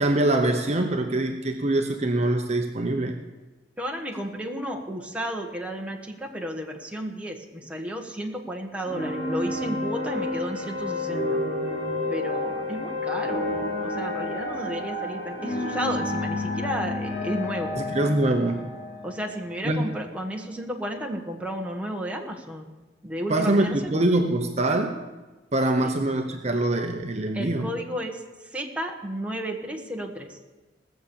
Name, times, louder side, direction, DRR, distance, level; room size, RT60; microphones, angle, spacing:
voice 1, 0.0-3.2 17.8-18.7 19.6-19.9 23.3-25.0 25.5-27.7, right 2 dB, 40° right, 4 dB, 0.9 m, -24 dB
voice 2, 3.8-11.4 12.1-17.8 19.0-22.7 23.0-23.9 25.8-25.9 27.3-28.2 28.5-30.4, equal, 5° right, 1 dB, 1.4 m, -33 dB
sound 1, 8.8-20.1, left 2 dB, 55° left, 3.9 m, -30 dB
18.5 x 7.2 x 7.0 m, 1.2 s
head